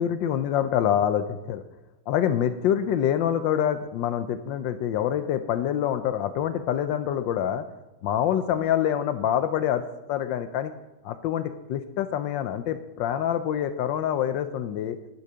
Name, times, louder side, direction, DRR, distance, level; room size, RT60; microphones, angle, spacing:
voice 1, 0.0-1.6 2.1-7.6 8.0-9.8 10.1-10.7 11.0-15.0, left 10 dB, 80° left, 10 dB, 1.3 m, -26 dB
10.5 x 8.8 x 5.6 m, 1.0 s
omnidirectional pair, 2.1 m